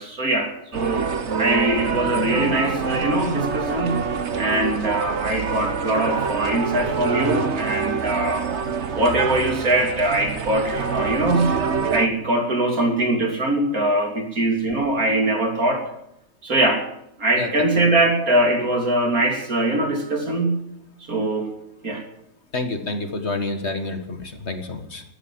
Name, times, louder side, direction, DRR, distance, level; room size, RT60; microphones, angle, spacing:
voice 1, 0.0-4.0 4.4-8.5 8.9-11.6 11.9-15.9 16.4-16.8 17.2-20.6 21.1-21.5 21.8-22.0, right 1 dB, 65° right, 3 dB, 3.5 m, -22 dB
sound 1, 0.7-12.1, right 5 dB, 50° right, 1.4 m, -26 dB
voice 2, 22.5-25.0, left 2 dB, 45° left, 7 dB, 1.9 m, -28 dB
14.0 x 12.5 x 7.6 m, 0.80 s
omnidirectional pair, 1.6 m